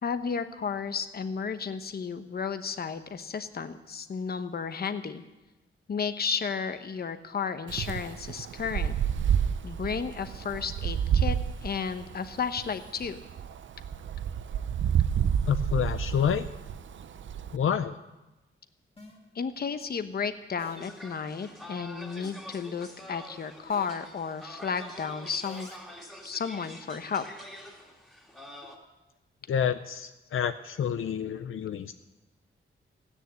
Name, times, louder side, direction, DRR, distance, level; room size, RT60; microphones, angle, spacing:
voice 1, 0.0-5.2 5.9-9.0 9.6-13.2 19.3-25.7 26.2-27.2, left 6 dB, 50° left, 10 dB, 0.9 m, -33 dB
Wind, 7.7-17.5, right 8 dB, 65° right, 0.6 m, -29 dB
voice 2, 15.5-16.5 17.5-18.0 29.5-31.9, left 8 dB, 80° left, 9 dB, 0.6 m, -28 dB
sound 1, 17.6-17.7 19.0-19.2 20.6-21.0 22.2-22.5 23.7-24.0 25.4-26.0, left 2 dB, 30° left, 2.3 m, -50 dB
sound 2, 20.8-28.8, left 1 dB, ahead, 2.2 m, -46 dB
16.0 x 9.9 x 8.0 m, 1.0 s
wide cardioid pair, 150°, 21 cm